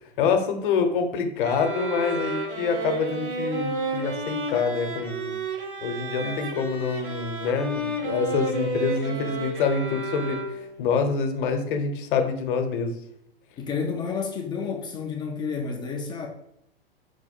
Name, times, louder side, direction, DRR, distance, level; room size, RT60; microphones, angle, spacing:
voice 1, 0.2-5.4 5.8-13.0, left 5 dB, 55° left, 6 dB, 0.9 m, -26 dB
sound 1, 1.4-10.8, right 2 dB, 60° right, 1.1 m, -31 dB
voice 2, 6.2-6.6 13.6-16.3, left 5 dB, 15° left, 2 dB, 0.3 m, -31 dB
4.7 x 2.2 x 4.2 m, 0.78 s
hypercardioid pair, 115°, 30 cm